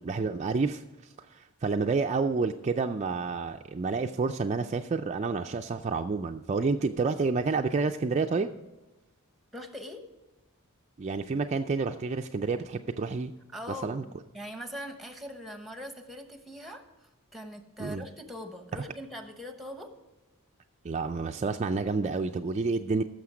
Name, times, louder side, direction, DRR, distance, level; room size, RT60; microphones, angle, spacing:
voice 1, 0.0-8.5 11.0-13.3 13.8-14.0 17.8-18.0 20.8-23.0, right 4 dB, 30° right, 5 dB, 0.4 m, -29 dB
voice 2, 9.5-10.1 13.5-19.9, equal, ahead, 7 dB, 1.0 m, -42 dB
15.5 x 6.5 x 4.9 m, 1.1 s
head